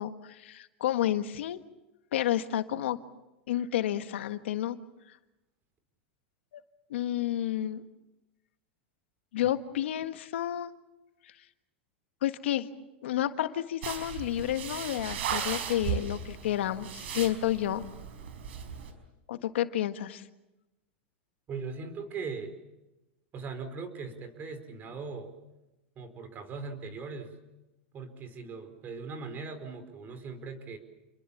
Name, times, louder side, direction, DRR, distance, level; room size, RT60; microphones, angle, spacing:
voice 1, 0.0-1.6 2.1-3.0 3.5-4.8 6.5-6.6 6.9-7.8 9.3-10.7 12.2-12.7 13.0-17.8 19.3-20.2, left 12 dB, 80° left, 10 dB, 1.6 m, -30 dB
sound 1, 13.8-18.9, right 7 dB, 75° right, 5.0 m, -36 dB
voice 2, 21.5-22.5 23.3-25.4 26.0-27.3 27.9-30.8, right 4 dB, 30° right, 10 dB, 4.7 m, -39 dB
29.5 x 22.0 x 7.3 m, 0.99 s
supercardioid pair, 130°, 6 cm